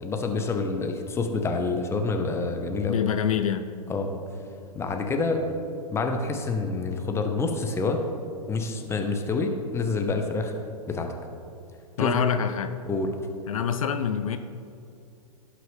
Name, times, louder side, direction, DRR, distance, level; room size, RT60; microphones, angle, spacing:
voice 1, 0.0-3.0 3.9-4.2 4.7-5.4 5.9-8.0 8.5-10.5 10.9-11.1 12.0-12.1 12.9-13.1, left 3 dB, 15° left, 4 dB, 1.0 m, -27 dB
voice 2, 2.8-3.7 12.0-12.7 13.5-14.4, left 8 dB, 60° left, 9 dB, 0.6 m, -25 dB
16.5 x 6.1 x 3.2 m, 2.6 s
figure-of-eight pair, 110°, 19 cm